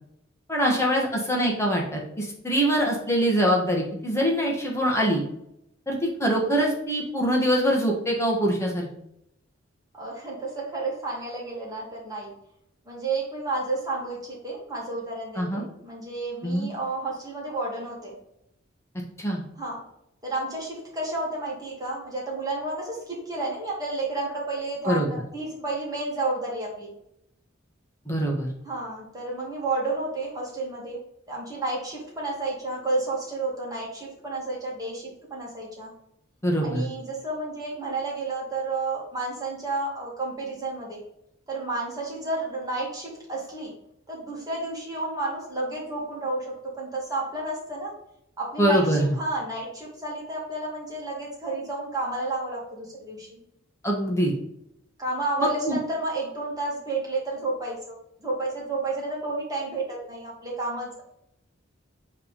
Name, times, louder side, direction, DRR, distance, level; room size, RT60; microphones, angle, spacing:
voice 1, 0.5-5.2 5.9-8.9 15.3-15.6 16.4-16.7 19.2-19.4 24.8-25.1 28.0-28.5 36.4-36.9 48.6-49.1 53.8-54.3 55.4-55.8, equal, 15° left, -1 dB, 1.5 m, -24 dB
voice 2, 9.9-12.3 12.9-18.2 19.6-19.8 20.2-26.9 28.6-31.0 31.3-35.9 36.6-41.0 41.5-43.7 44.1-47.9 48.4-53.4 55.0-57.9 58.2-61.0, right 2 dB, 20° right, -4 dB, 2.4 m, -31 dB
8.0 x 3.5 x 5.2 m, 0.78 s
head